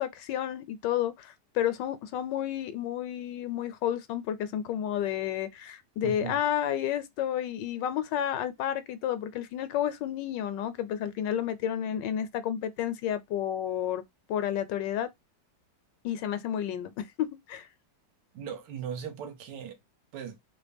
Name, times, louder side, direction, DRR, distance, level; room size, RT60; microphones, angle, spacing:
voice 1, 0.0-14.0 14.3-15.1 16.0-17.7, left 10 dB, 80° left, 1.3 m, -31 dB
voice 2, 6.0-6.4 18.3-19.8 20.1-20.4, right 7 dB, 75° right, 1.4 m, -38 dB
4.1 x 2.1 x 3.3 m
omnidirectional pair, 1.9 m